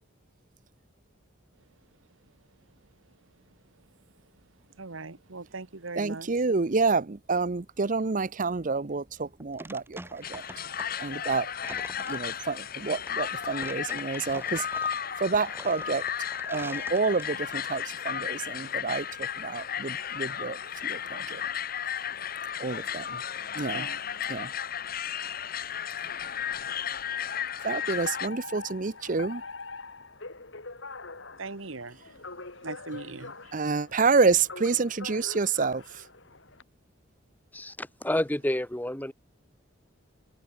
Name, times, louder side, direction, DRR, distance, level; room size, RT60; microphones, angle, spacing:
voice 1, 4.8-6.3 23.7-24.0 26.9-27.1 31.4-32.0 32.6-33.5, right 3 dB, 85° right, 1.5 m, -40 dB
voice 2, 6.0-10.4 11.0-11.5 12.1-14.6 15.2-16.0 16.5-20.6 20.8-21.4 22.6-23.2 23.5-23.9 24.3-24.5 27.6-29.4 33.5-36.0, right 4 dB, 40° right, 0.7 m, -28 dB
sound 1, 9.1-17.7, right 2 dB, 10° right, 1.4 m, -46 dB
sound 2, 10.2-28.3, left 8 dB, 45° left, 1.2 m, -34 dB
Alarm, 28.1-36.6, left 3 dB, 70° left, 3.0 m, -43 dB
voice 3, 37.5-39.1, left 1 dB, 10° left, 1.0 m, -29 dB
head